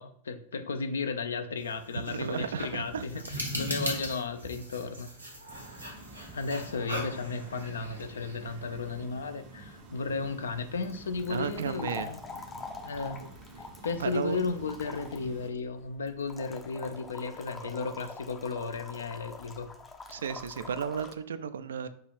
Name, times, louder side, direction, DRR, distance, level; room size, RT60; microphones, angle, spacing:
voice 1, 0.0-5.1 6.3-12.2 12.8-13.2 13.8-19.7, left 4 dB, 70° left, 9 dB, 0.5 m, -34 dB
sound 1, 1.6-9.0, equal, 85° right, 1.4 m, -39 dB
voice 2, 1.9-3.0 11.3-12.1 14.0-14.4 20.1-21.9, right 7 dB, 65° right, 12 dB, 0.3 m, -34 dB
sound 2, 5.5-15.5, right 3 dB, 35° right, 0.7 m, -50 dB
sound 3, 10.8-21.1, left 3 dB, 15° left, 0.5 m, -45 dB
4.7 x 2.4 x 4.7 m, 0.63 s
figure-of-eight pair, 90°, 0 cm